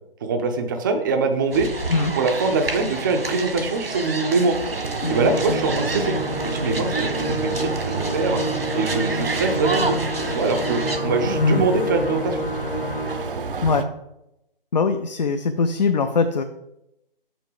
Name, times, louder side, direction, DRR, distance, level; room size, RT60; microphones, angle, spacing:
voice 1, 0.2-1.7 2.2-4.6 5.1-6.2 6.4-8.4 8.7-10.0 10.3-12.4, right 4 dB, 20° right, 6 dB, 0.5 m, -23 dB
sound 1, 1.5-11.0, right 3 dB, 85° right, 1.6 m, -30 dB
sound 2, 4.5-13.8, right 4 dB, 65° right, 0.8 m, -31 dB
Musical instrument, 5.0-13.5, left 1 dB, 80° left, 1.4 m, -28 dB
voice 2, 14.7-16.4, left 4 dB, 50° left, 7 dB, 0.5 m, -21 dB
6.5 x 6.1 x 4.9 m, 0.86 s
figure-of-eight pair, 140°, 29 cm